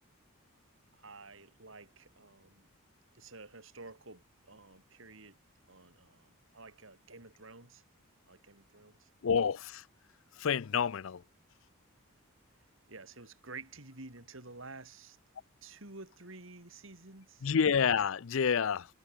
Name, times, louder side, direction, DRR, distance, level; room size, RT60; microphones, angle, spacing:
voice 1, 0.9-2.7 3.1-5.4 5.7-7.8 8.3-9.1 12.9-15.2 15.6-17.5, right 3 dB, 65° right, 3.5 m, -51 dB
voice 2, 9.2-9.8 10.4-11.2 17.4-18.9, left 6 dB, 65° left, 0.5 m, -28 dB
head